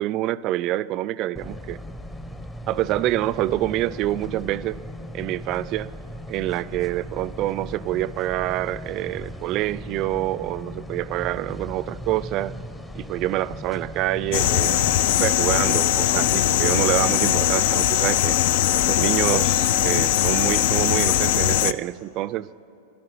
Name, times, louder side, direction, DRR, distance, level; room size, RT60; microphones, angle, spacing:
voice 1, 0.0-1.8 2.7-4.8 5.1-5.9 6.3-12.6 12.9-18.4 18.9-22.4, right 15 dB, 45° right, 18 dB, 0.3 m, -26 dB
sound 1, 1.4-15.2, left 1 dB, 10° left, 0.7 m, -38 dB
sound 2, 14.3-21.7, left 12 dB, 65° left, 0.4 m, -20 dB
13.0 x 11.5 x 7.0 m, 2.8 s
hypercardioid pair, 110°, 0 cm